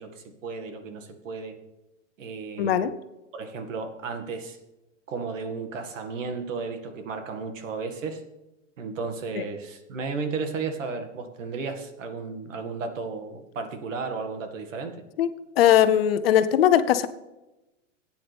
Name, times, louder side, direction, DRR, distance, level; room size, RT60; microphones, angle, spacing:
voice 1, 0.0-1.6 2.2-2.8 3.3-4.6 5.1-8.2 8.8-15.0, right 4 dB, 80° right, 7 dB, 2.1 m, -34 dB
voice 2, 2.6-2.9 9.4-9.5 15.2-15.3 15.6-17.1, left 10 dB, 50° left, 12 dB, 0.8 m, -19 dB
16.5 x 9.4 x 3.5 m, 0.98 s
supercardioid pair, 170°, 38 cm